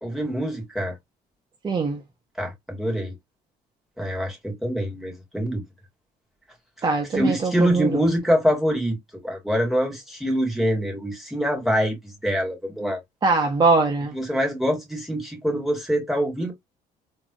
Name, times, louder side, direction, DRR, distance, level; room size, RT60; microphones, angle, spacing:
voice 1, 0.0-1.0 2.4-3.1 4.0-5.6 7.1-9.0 9.2-13.0 14.1-16.5, equal, ahead, 2.0 m, -24 dB
voice 2, 1.6-2.0 6.8-8.0 13.2-14.1, right 3 dB, 25° right, 0.7 m, -22 dB
3.9 x 3.1 x 2.3 m
cardioid pair, 110°, 17 cm